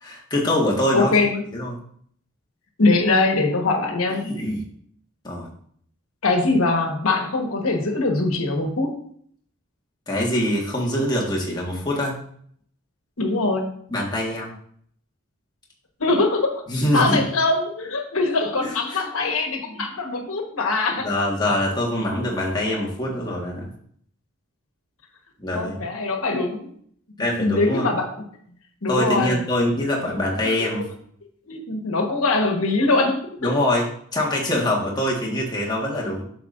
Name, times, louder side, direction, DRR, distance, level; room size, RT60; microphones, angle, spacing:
voice 1, 0.0-1.1 1.5-1.8 4.2-4.6 5.2-5.5 10.1-12.2 13.9-14.5 16.7-17.3 18.6-19.0 19.7-19.8 21.0-23.7 25.4-25.9 27.2-27.9 28.9-30.8 33.4-36.2, left 1 dB, 20° left, -3 dB, 1.5 m, -24 dB
voice 2, 0.9-1.4 2.8-4.3 6.2-9.0 13.2-13.7 16.0-16.6 16.9-21.1 25.5-26.7 27.3-28.2 28.8-29.4 31.5-33.2, left 3 dB, 85° left, 3 dB, 1.3 m, -22 dB
7.6 x 6.8 x 2.6 m, 0.63 s
head